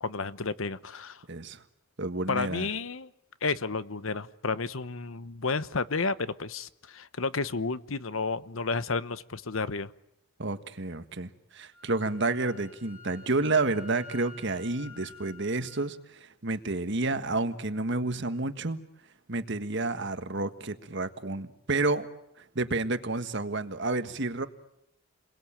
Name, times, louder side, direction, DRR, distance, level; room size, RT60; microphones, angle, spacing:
voice 1, 0.0-1.2 2.3-3.1 3.4-9.9, left 4 dB, 70° left, 15 dB, 1.0 m, -31 dB
voice 2, 1.3-1.6 2.0-2.7 10.4-18.8 19.3-22.1 22.5-24.5, right 3 dB, 55° right, 10 dB, 1.5 m, -30 dB
Wind instrument woodwind instrument, 11.7-15.9, left 3 dB, 5° right, 2.0 m, -50 dB
30.0 x 22.0 x 8.8 m, 0.80 s
head